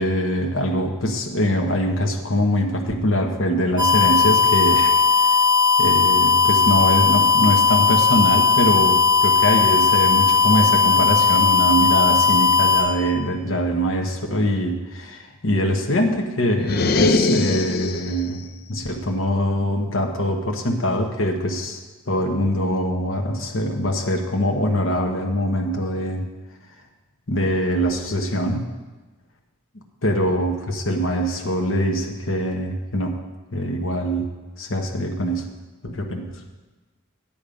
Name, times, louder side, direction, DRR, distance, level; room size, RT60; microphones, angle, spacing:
voice 1, 0.0-5.4 5.8-21.8 22.1-26.3 27.3-28.7 30.0-33.2 33.5-34.3 34.6-35.5 35.8-36.3, equal, 70° left, 1 dB, 1.2 m, -23 dB
sound 1, 3.8-12.8, left 5 dB, 25° right, 1.8 m, -17 dB
sound 2, 16.6-18.2, left 3 dB, 50° left, 0.5 m, -20 dB
9.1 x 8.6 x 5.2 m, 1.2 s
head